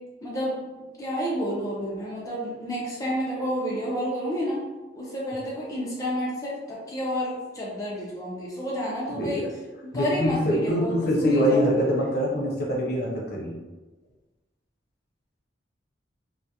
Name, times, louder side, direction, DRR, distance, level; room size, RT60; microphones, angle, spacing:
voice 1, 0.2-0.6 1.0-4.6 5.0-9.4 9.9-11.8, equal, 20° left, -6 dB, 0.4 m, -30 dB
voice 2, 9.1-9.5 9.9-13.5, equal, 60° left, -3 dB, 0.6 m, -24 dB
2.2 x 2.0 x 2.7 m, 1.2 s
head